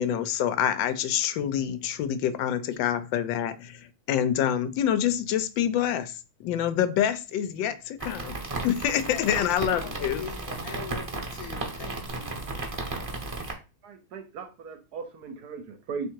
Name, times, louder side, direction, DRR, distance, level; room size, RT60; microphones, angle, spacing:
voice 1, 0.0-8.4 8.6-10.2, left 10 dB, 90° left, 11 dB, 1.3 m, -27 dB
sound 1, 8.0-13.5, right 3 dB, 25° right, 0.7 m, -34 dB
voice 2, 9.0-12.5, left 6 dB, 65° left, 6 dB, 1.1 m, -43 dB
voice 3, 13.8-16.1, right 5 dB, 65° right, 7 dB, 1.1 m, -38 dB
3.6 x 3.2 x 4.4 m, 0.31 s
omnidirectional pair, 2.0 m